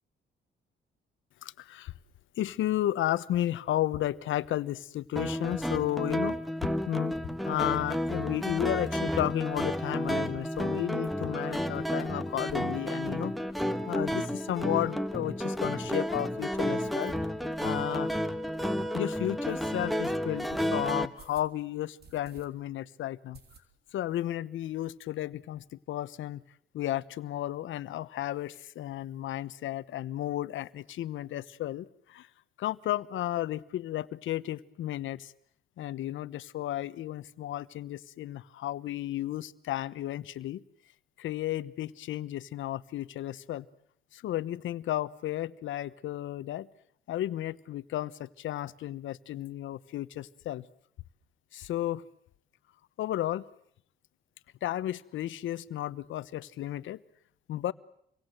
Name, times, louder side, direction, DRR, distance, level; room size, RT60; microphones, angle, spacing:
voice 1, 1.4-1.9 2.4-6.4 6.9-7.2 7.4-13.4 13.9-17.3 17.6-18.1 18.9-23.4 23.9-26.4 26.7-32.3 32.6-35.3 35.8-40.6 41.2-43.7 44.1-46.7 47.1-50.7 51.5-52.0 53.0-53.4 54.6-57.0 57.5-57.7, left 13 dB, 75° left, 15 dB, 1.1 m, -33 dB
sound 1, 5.2-21.1, equal, ahead, 1.6 m, -31 dB
sound 2, 19.5-19.7 20.4-20.7 21.2-21.5 22.0-22.5 22.8-22.9 23.3-24.0 24.3-24.4 24.7-24.8 25.0-25.7, right 5 dB, 55° right, 4.0 m, -55 dB
28.0 x 23.0 x 7.9 m, 0.67 s
cardioid pair, 90°, 20 cm